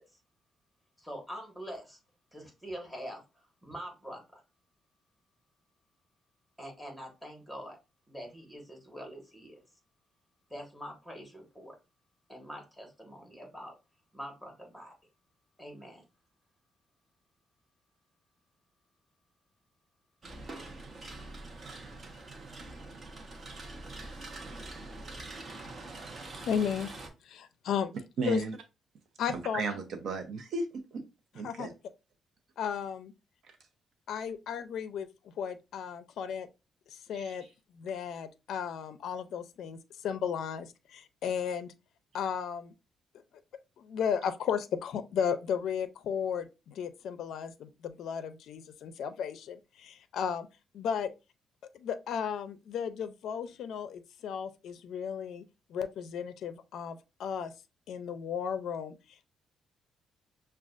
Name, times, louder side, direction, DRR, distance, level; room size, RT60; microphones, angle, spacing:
voice 1, 1.0-2.0 2.3-4.4 6.6-7.8 8.1-9.6 10.5-11.8 12.3-13.7 14.1-14.9 15.6-16.0, equal, ahead, 1.4 m, -44 dB
sound 1, 20.2-27.1, right 2 dB, 35° right, 0.9 m, -44 dB
voice 2, 26.4-26.9 27.2-27.9 28.3-28.4 29.2-29.6 31.4-31.7 32.6-33.1 34.1-36.5 36.9-37.5 37.7-41.7 42.1-42.7 43.8-50.5 50.7-51.1 51.7-55.4 55.7-57.5 57.9-59.3, left 7 dB, 75° left, 0.4 m, -34 dB
voice 3, 28.2-28.6 29.3-31.0 31.3-31.7 33.4-33.6 37.1-37.4, right 3 dB, 65° right, 0.6 m, -35 dB
5.9 x 2.3 x 2.4 m
cardioid pair, 125°, 0 cm